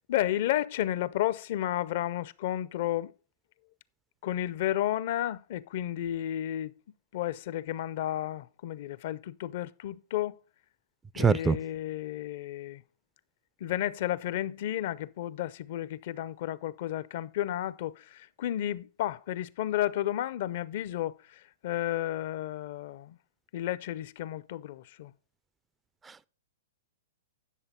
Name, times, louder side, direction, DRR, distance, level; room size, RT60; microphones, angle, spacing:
voice 1, 0.1-3.1 4.2-6.7 7.1-10.4 11.2-12.8 13.6-23.2 23.5-25.1, left 12 dB, 55° left, 0.4 m, -32 dB
voice 2, 11.1-11.6 26.1-26.3, right 5 dB, 15° right, 0.3 m, -24 dB
10.0 x 6.7 x 4.2 m
hypercardioid pair, 115°, 0 cm